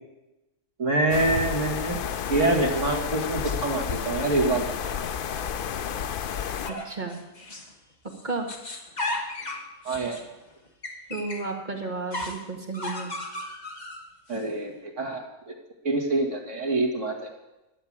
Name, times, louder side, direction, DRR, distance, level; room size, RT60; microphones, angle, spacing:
voice 1, 0.8-2.0 2.3-4.7 9.8-10.2 14.3-15.5 15.8-17.1, right 2 dB, 65° right, 2 dB, 2.3 m, -25 dB
sound 1, 1.1-6.7, left 8 dB, 55° left, 0.6 m, -31 dB
sound 2, 2.2-3.8 4.7-6.0 6.6-7.8 8.1-11.5 12.1-14.4, left 2 dB, 35° left, 1.4 m, -37 dB
voice 2, 6.7-7.2 8.2-8.5 11.1-13.2, right 3 dB, 35° right, 1 dB, 1.8 m, -32 dB
12.0 x 7.9 x 8.7 m, 0.98 s
omnidirectional pair, 1.4 m